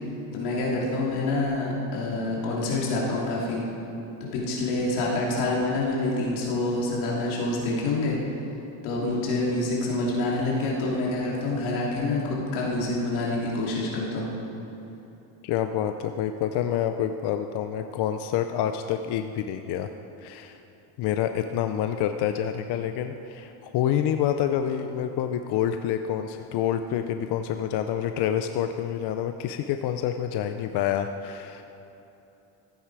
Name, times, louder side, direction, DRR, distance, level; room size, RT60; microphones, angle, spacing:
voice 1, 0.3-3.6 4.2-8.2 8.8-14.3, left 2 dB, 85° left, -4 dB, 3.1 m, -27 dB
voice 2, 15.4-19.9 20.2-20.6 21.0-31.6, left 10 dB, 55° left, 8 dB, 0.6 m, -27 dB
15.0 x 9.2 x 4.8 m, 3.0 s
cardioid pair, 130°, 49 cm